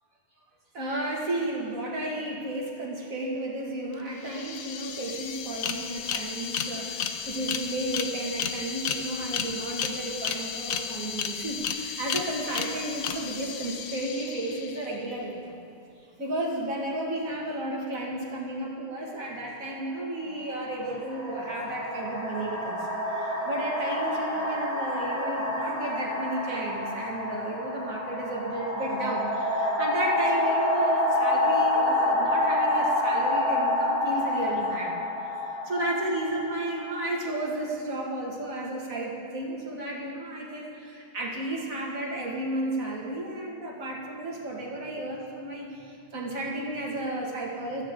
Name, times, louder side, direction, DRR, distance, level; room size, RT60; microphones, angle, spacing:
voice 1, 0.7-15.6 16.2-22.9 23.4-35.0 35.6-47.8, right 1 dB, 75° right, -3 dB, 2.4 m, -33 dB
sound 1, 3.9-4.0 4.2-15.0, left 7 dB, 75° left, 1.1 m, -33 dB
sound 2, 19.6-19.8 20.7-37.4, left 1 dB, 30° left, 2.7 m, -28 dB
16.0 x 13.5 x 3.7 m, 2.6 s
omnidirectional pair, 1.5 m